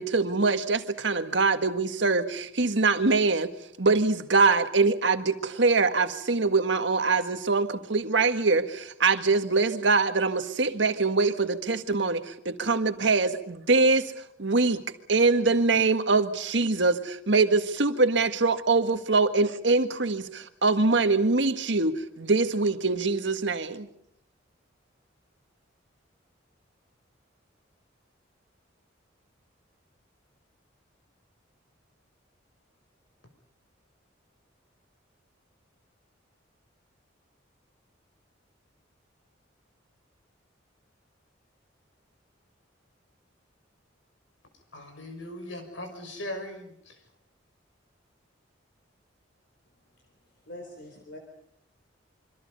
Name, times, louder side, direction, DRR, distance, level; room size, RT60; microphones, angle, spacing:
voice 1, 0.0-3.5 3.8-14.1 14.4-14.8 15.1-23.9, right 3 dB, 65° right, 8 dB, 1.7 m, -24 dB
voice 2, 44.7-47.0, left 1 dB, 80° left, 6 dB, 6.3 m, -39 dB
voice 3, 49.9-51.2, left 1 dB, 60° left, 3 dB, 4.0 m, -45 dB
27.0 x 25.0 x 5.5 m, 0.73 s
head